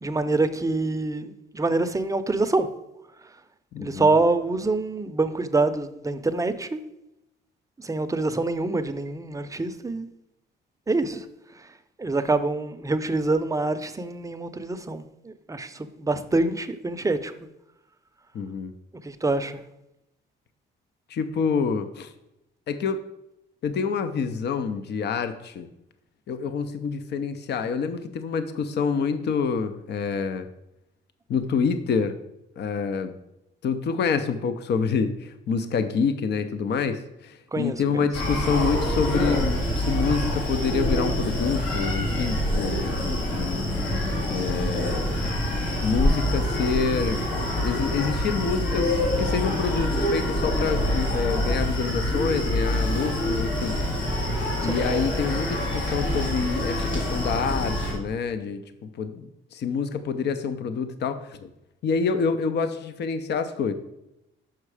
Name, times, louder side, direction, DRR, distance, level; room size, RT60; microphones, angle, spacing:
voice 1, 0.0-2.7 3.8-6.8 7.8-10.1 10.9-11.3 12.0-17.3 19.0-19.6 37.5-38.0 54.6-54.8, right 3 dB, 15° right, 10 dB, 0.5 m, -25 dB
voice 2, 3.7-4.1 18.3-18.7 21.1-22.1 22.7-23.0 23.6-25.7 26.3-30.5 31.3-32.2 32.6-33.1 33.6-43.7 44.3-45.0 45.8-53.8 54.6-58.6 59.0-61.5 61.8-63.7, left 5 dB, 60° left, 10 dB, 0.6 m, -27 dB
Screaming, 38.1-57.9, left 1 dB, 80° left, 2.6 m, -26 dB
6.0 x 5.5 x 4.8 m, 0.87 s
cardioid pair, 90°, 20 cm